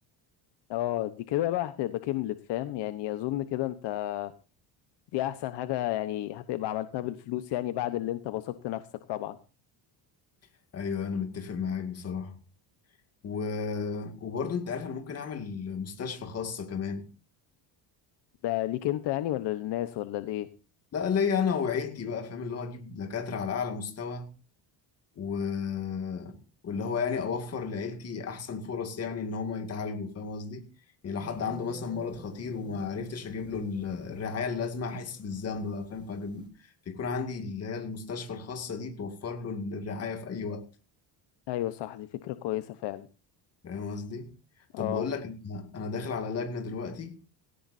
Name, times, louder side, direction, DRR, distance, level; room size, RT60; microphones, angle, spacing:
voice 1, 0.7-4.3 5.1-9.4 18.4-20.5 41.5-43.1 44.7-45.1, left 14 dB, 65° left, 1.0 m, -31 dB
voice 2, 10.7-12.4 13.2-17.1 20.9-24.3 25.2-26.4 26.6-30.6 31.0-36.5 36.9-40.7 43.6-44.3 44.8-47.2, left 5 dB, 30° left, 2.2 m, -33 dB
sound 1, 31.2-36.5, right 1 dB, 10° right, 2.3 m, -51 dB
18.0 x 17.0 x 2.7 m
cardioid pair, 170°, 46 cm